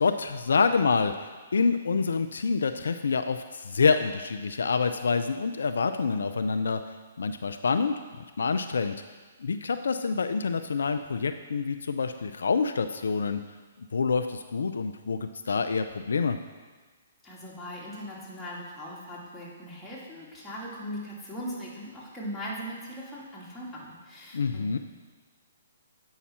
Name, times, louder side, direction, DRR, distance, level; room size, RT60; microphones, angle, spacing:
voice 1, 0.0-6.8 7.2-8.9 9.4-13.4 13.9-16.4 24.3-24.8, left 5 dB, 75° left, 9 dB, 0.4 m, -27 dB
voice 2, 17.2-24.8, equal, 5° left, -7 dB, 2.2 m, -39 dB
8.4 x 5.7 x 4.3 m, 1.4 s
hypercardioid pair, 135°, 0 cm